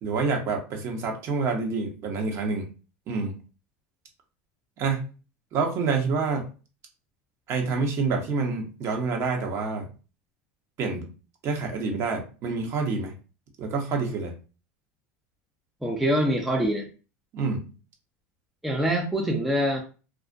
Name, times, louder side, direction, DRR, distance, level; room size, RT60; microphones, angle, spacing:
voice 1, 0.0-2.7 3.1-3.4 4.8-5.1 5.5-6.5 7.5-9.9 10.8-11.1 11.4-13.1 13.6-14.3 17.3-17.7, right 4 dB, 45° right, 2 dB, 0.8 m, -27 dB
voice 2, 15.8-16.9 18.6-19.8, equal, ahead, 0 dB, 0.4 m, -24 dB
2.4 x 2.1 x 2.5 m, 0.34 s
supercardioid pair, 125°, 7 cm